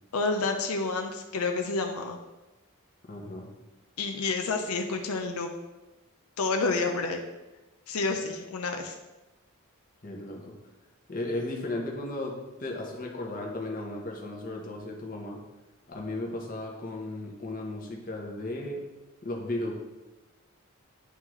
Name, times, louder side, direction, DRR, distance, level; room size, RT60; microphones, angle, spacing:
voice 1, 0.1-2.2 4.0-5.5 6.4-7.2 7.9-8.9, left 3 dB, 85° left, 4 dB, 0.5 m, -29 dB
voice 2, 3.1-3.5 10.0-10.6 11.1-15.4 15.9-18.9 19.2-19.7, left 2 dB, 40° left, 0 dB, 0.9 m, -35 dB
9.3 x 3.7 x 3.1 m, 1.1 s
head